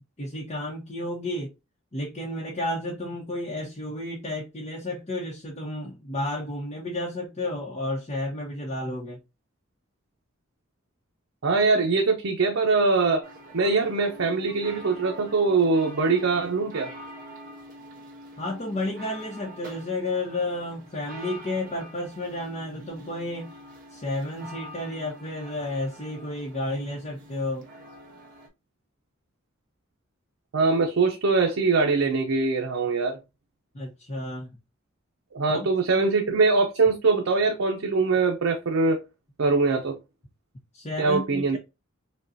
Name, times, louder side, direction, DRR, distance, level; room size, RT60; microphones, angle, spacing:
voice 1, 0.0-1.5 1.9-9.2 18.4-23.5 23.9-27.7 33.7-34.5 35.5-35.7 35.9-36.1 40.7-41.6, left 1 dB, 35° left, 0.9 m, -32 dB
voice 2, 11.4-13.2 13.5-16.9 30.5-33.2 35.3-39.0 39.4-40.0 41.0-41.6, right 4 dB, 80° right, 0.6 m, -22 dB
sound 1, 13.2-28.5, right 1 dB, 45° right, 1.4 m, -45 dB
5.2 x 2.3 x 2.6 m
head